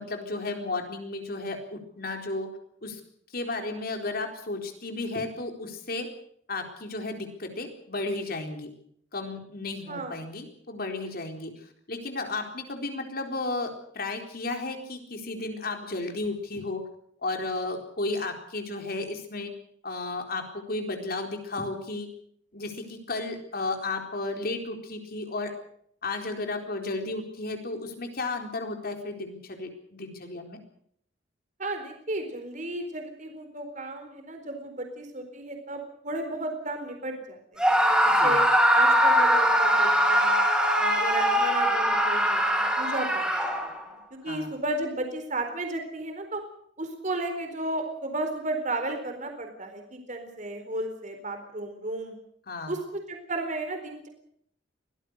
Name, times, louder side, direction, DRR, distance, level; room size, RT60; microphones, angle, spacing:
voice 1, 0.0-2.5 2.8-3.0 3.3-6.1 6.5-8.7 9.1-11.5 11.9-16.8 17.2-19.5 19.8-22.1 22.5-25.5 26.0-30.6 38.0-38.4 44.2-44.5 52.5-52.8, left 2 dB, 55° left, 4 dB, 4.2 m, -33 dB
voice 2, 9.9-10.2 31.6-37.7 38.0-38.4 38.7-40.4 40.8-46.4 46.8-52.1 52.7-54.1, right 2 dB, 40° right, 5 dB, 4.2 m, -34 dB
Screaming, 37.6-43.8, equal, 5° right, 5.4 m, -22 dB
24.0 x 18.0 x 6.7 m, 0.67 s
head